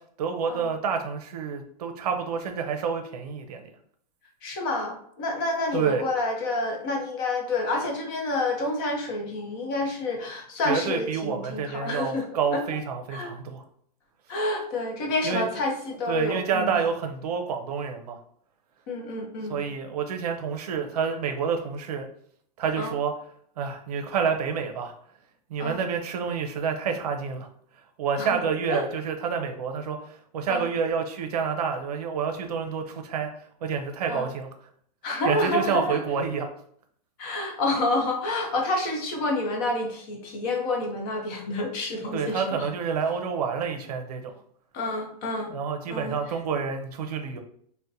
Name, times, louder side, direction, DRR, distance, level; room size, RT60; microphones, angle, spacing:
voice 1, 0.2-3.7 5.7-6.0 10.6-13.6 15.2-15.5 16.1-18.2 19.5-22.1 22.6-23.1 23.6-24.9 25.5-27.5 28.0-33.3 33.6-34.5 35.2-36.5 42.1-44.3 45.5-47.4, right 6 dB, 70° right, 5 dB, 0.6 m, -28 dB
voice 2, 4.4-12.3 12.5-12.6 13.1-13.3 14.3-16.8 18.9-19.6 22.8-22.9 25.6-25.8 28.2-28.4 28.7-28.8 30.5-30.7 34.1-34.3 35.0-36.0 37.2-42.7 44.7-45.5 45.9-46.2, left 2 dB, 30° left, 1 dB, 0.7 m, -28 dB
3.9 x 2.1 x 2.6 m, 0.63 s
supercardioid pair, 170°, 21 cm